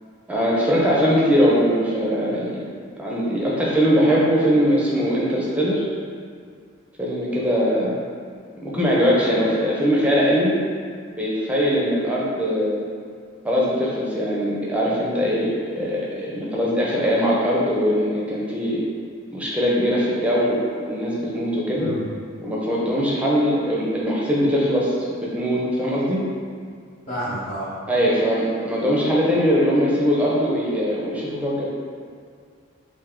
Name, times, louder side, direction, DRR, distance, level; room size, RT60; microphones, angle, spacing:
voice 1, 0.3-2.6 3.0-5.9 7.0-8.0 8.5-10.5 11.2-12.8 13.4-18.8 19.3-21.9 22.4-26.2 27.9-31.7, equal, 5° right, -6 dB, 0.5 m, -21 dB
voice 2, 27.1-27.7, equal, 30° left, -15 dB, 0.9 m, -29 dB
3.4 x 2.6 x 3.6 m, 2.1 s
head